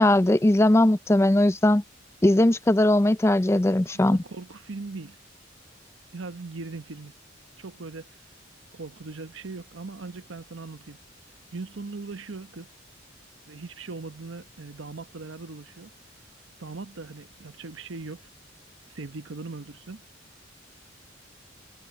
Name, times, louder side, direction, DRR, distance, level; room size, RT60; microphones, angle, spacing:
voice 1, 0.0-1.8 2.2-4.2, left 1 dB, 15° left, 0.4 m, -19 dB
voice 2, 3.9-5.2 6.1-7.1 7.6-8.1 8.7-11.0 11.5-12.7 13.5-15.9 16.6-18.2 18.9-20.0, right 3 dB, 85° right, 1.0 m, -39 dB
head